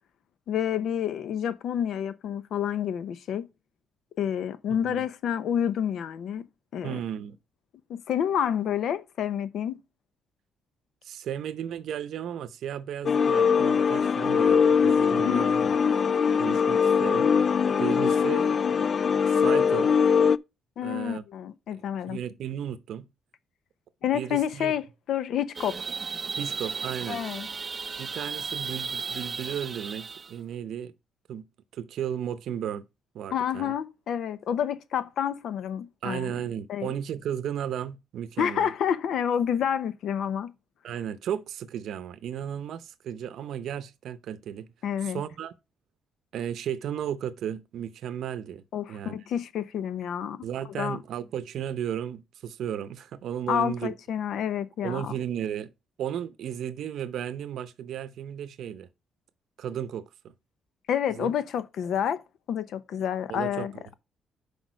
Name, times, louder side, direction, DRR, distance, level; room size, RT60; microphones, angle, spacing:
voice 1, 0.5-3.5 4.2-6.5 6.7-7.0 7.9-9.8 15.3-15.5 20.8-22.2 24.0-25.8 27.1-27.5 33.3-36.3 36.7-36.9 38.4-40.5 44.8-45.2 48.7-50.5 50.7-51.0 53.5-55.1 60.9-62.2 62.5-63.7, left 9 dB, 70° left, 0.8 m, -29 dB
voice 2, 6.8-7.4 11.0-15.6 16.4-17.3 17.8-18.5 19.3-19.9 20.8-21.2 21.7-23.1 24.1-24.7 26.4-27.2 28.0-30.9 31.3-31.4 31.7-32.8 33.1-33.7 36.0-38.7 40.8-44.7 45.0-45.5 46.3-48.6 48.9-49.2 50.4-53.9 54.8-55.7 56.0-58.9 59.6-60.3 61.1-61.3 63.3-63.9, right 9 dB, 75° right, 0.7 m, -34 dB
sound 1, 13.0-20.4, left 6 dB, 45° left, 0.3 m, -22 dB
sound 2, 25.5-30.3, right 5 dB, 35° right, 0.5 m, -35 dB
6.2 x 5.1 x 5.1 m
cardioid pair, 95°, 0 cm